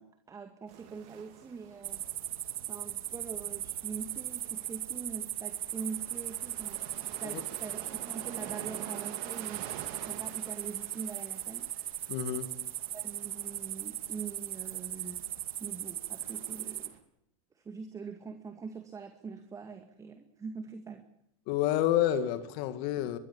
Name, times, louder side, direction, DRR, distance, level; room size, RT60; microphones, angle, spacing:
voice 1, 0.0-2.0 2.7-6.8 7.2-11.7 12.9-15.2 15.6-16.9 17.5-21.0, right 5 dB, 20° right, 2.2 m, -43 dB
sound 1, 0.7-17.0, right 10 dB, 55° right, 3.6 m, -49 dB
sound 2, 1.8-16.9, right 12 dB, 80° right, 1.7 m, -38 dB
voice 2, 12.1-12.5 21.5-23.2, left 12 dB, 55° left, 2.3 m, -29 dB
23.5 x 22.0 x 7.4 m
hypercardioid pair, 120°, 18 cm